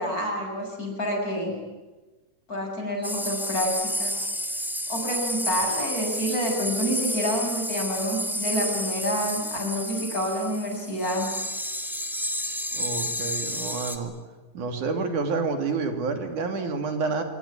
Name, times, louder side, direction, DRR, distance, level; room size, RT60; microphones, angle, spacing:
voice 1, 0.0-1.5 2.5-4.2 4.9-11.3, equal, 25° left, 2 dB, 7.7 m, -28 dB
sound 1, 3.0-14.0, equal, ahead, 1.7 m, -30 dB
voice 2, 12.7-14.1 14.5-17.2, right 4 dB, 80° right, 6 dB, 4.3 m, -28 dB
26.5 x 22.5 x 10.0 m, 1.2 s
omnidirectional pair, 3.5 m